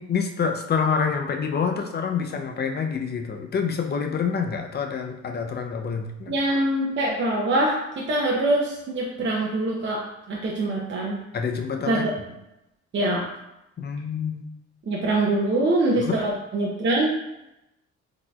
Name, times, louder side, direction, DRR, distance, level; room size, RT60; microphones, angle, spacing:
voice 1, 0.0-6.3 11.3-12.1 13.8-14.5 16.0-16.2, left 6 dB, 35° left, 4 dB, 0.5 m, -27 dB
voice 2, 6.3-10.0 10.3-11.2 11.9-12.0 12.9-13.2 14.9-17.1, right 1 dB, 40° right, -2 dB, 0.6 m, -24 dB
4.0 x 2.8 x 2.3 m, 0.89 s
cardioid pair, 90°, 30 cm